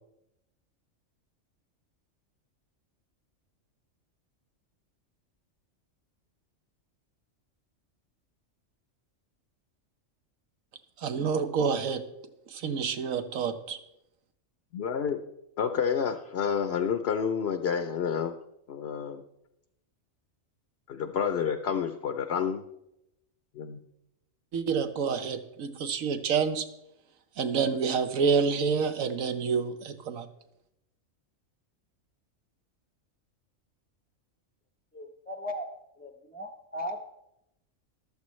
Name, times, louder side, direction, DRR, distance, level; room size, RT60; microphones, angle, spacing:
voice 1, 11.0-12.0 12.5-13.8 24.5-26.7 27.4-30.3, right 6 dB, 80° right, 9 dB, 1.3 m, -28 dB
voice 2, 14.7-15.2 15.6-18.4 18.7-19.2 20.9-22.6 23.5-23.8, left 7 dB, 60° left, 8 dB, 0.8 m, -29 dB
voice 3, 34.9-35.7 36.0-37.1, equal, 10° left, 4 dB, 0.6 m, -37 dB
14.0 x 12.5 x 3.2 m, 0.86 s
omnidirectional pair, 1.4 m